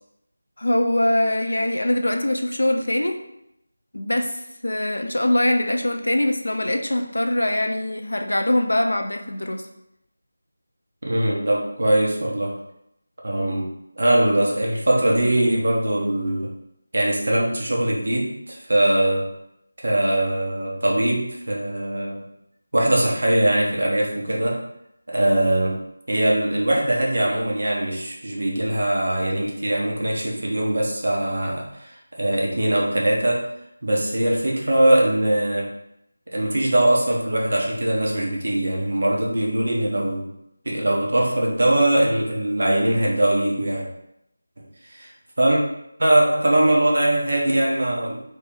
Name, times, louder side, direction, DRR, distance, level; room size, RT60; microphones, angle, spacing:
voice 1, 0.6-3.2 3.9-4.4 4.6-9.6, left 1 dB, 90° left, 4 dB, 0.6 m, -22 dB
voice 2, 11.0-12.5 13.2-13.7 14.0-16.5 16.9-19.3 19.8-22.2 22.7-24.6 25.1-25.8 26.1-33.5 33.8-35.7 36.3-40.3 40.6-43.9 44.9-45.1 45.4-45.6 46.0-48.4, right 1 dB, 65° right, -2 dB, 1.1 m, -21 dB
3.1 x 2.9 x 3.7 m, 0.80 s
figure-of-eight pair, 170°, 0 cm